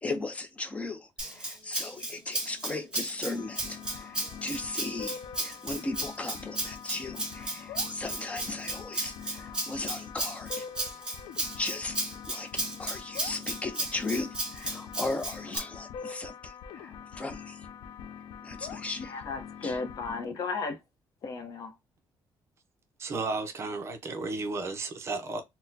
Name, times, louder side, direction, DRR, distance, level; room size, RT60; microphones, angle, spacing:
voice 1, 0.0-10.6 11.6-12.0 12.3-17.7 18.4-19.2 19.6-19.8, left 2 dB, 15° left, 0.5 m, -37 dB
Rattle (instrument), 1.2-15.6, right 2 dB, 10° right, 0.9 m, -35 dB
sound 1, 3.4-20.2, left 7 dB, 85° left, 0.4 m, -44 dB
voice 2, 19.0-20.8 21.2-21.8, left 4 dB, 50° left, 0.7 m, -35 dB
voice 3, 23.0-25.4, right 3 dB, 35° right, 0.6 m, -33 dB
4.1 x 2.1 x 2.6 m
cardioid pair, 170°, 8 cm